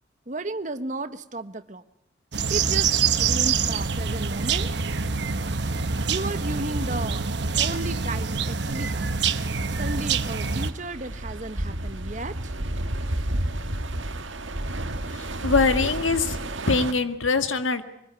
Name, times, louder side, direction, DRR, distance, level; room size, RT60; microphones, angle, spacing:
voice 1, 0.3-1.8 2.5-4.7 6.1-7.2 7.6-9.1 9.8-12.5, right 2 dB, 40° right, 11 dB, 1.1 m, -34 dB
sound 1, 2.3-10.7, right 5 dB, 60° right, 1.1 m, -25 dB
sound 2, 6.8-6.9 7.4-7.6 8.0-16.9, right 1 dB, 75° right, 1.7 m, -32 dB
voice 2, 15.1-16.4 16.7-17.8, left 4 dB, 85° left, 8 dB, 1.8 m, -23 dB
24.0 x 20.5 x 9.7 m, 0.80 s
head